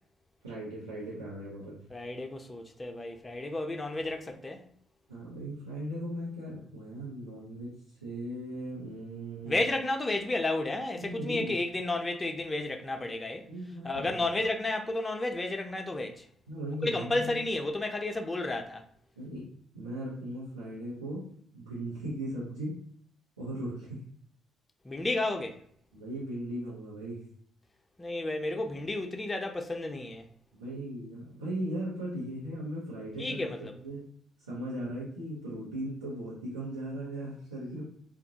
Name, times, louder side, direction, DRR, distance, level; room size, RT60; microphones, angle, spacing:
voice 1, 0.4-1.8 5.1-7.7 8.0-9.6 11.0-11.6 13.5-14.2 16.5-17.4 19.2-19.5 19.7-21.3 21.5-22.8 23.4-24.0 25.9-27.2 30.5-34.1 34.5-37.8, right 1 dB, 90° right, 0.8 m, -38 dB
voice 2, 1.9-4.6 9.5-13.5 13.8-16.3 16.8-18.8 24.8-25.6 28.0-30.3 33.2-33.7, left 2 dB, 25° left, 0.4 m, -32 dB
2.3 x 2.1 x 2.7 m
figure-of-eight pair, 45°, 0 cm